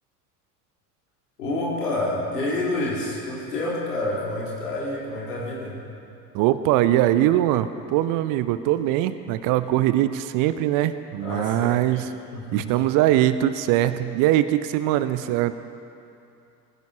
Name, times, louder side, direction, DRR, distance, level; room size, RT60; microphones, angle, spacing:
voice 1, 1.4-5.8 11.2-11.8 12.3-12.7, left 2 dB, 70° left, -5 dB, 4.2 m, -28 dB
voice 2, 6.3-12.0 12.5-15.5, right 13 dB, 45° right, 13 dB, 0.7 m, -21 dB
23.0 x 16.0 x 3.0 m, 2.7 s
figure-of-eight pair, 65°, 47 cm